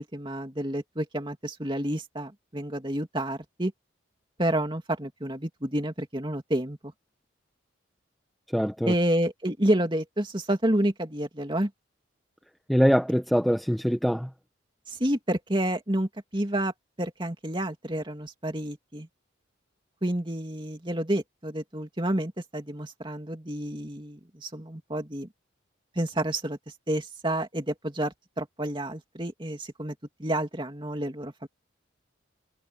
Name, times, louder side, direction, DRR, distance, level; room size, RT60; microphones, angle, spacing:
voice 1, 0.0-3.7 4.4-6.9 8.8-11.7 14.9-16.7 17.0-19.1 20.0-25.3 26.0-26.6 26.9-29.9 30.2-31.5, right 1 dB, 25° right, 2.7 m, -29 dB
voice 2, 8.5-8.9 12.7-14.3, equal, ahead, 1.0 m, -23 dB
head